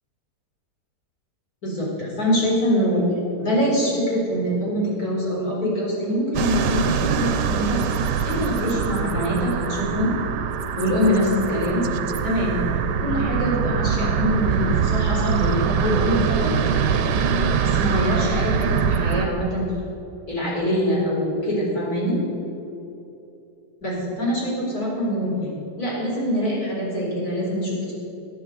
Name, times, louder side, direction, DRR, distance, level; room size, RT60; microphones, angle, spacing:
voice 1, 1.6-3.0 3.4-7.9 8.2-10.1 10.8-11.8 12.2-12.6 13.0-16.5 17.6-19.6 20.3-22.2 23.8-25.5 25.8-27.9, equal, 60° left, -5 dB, 5.0 m, -24 dB
sound 1, 6.3-19.3, right 6 dB, 90° right, 1.4 m, -23 dB
14.0 x 9.4 x 7.9 m, 2.9 s
omnidirectional pair, 1.8 m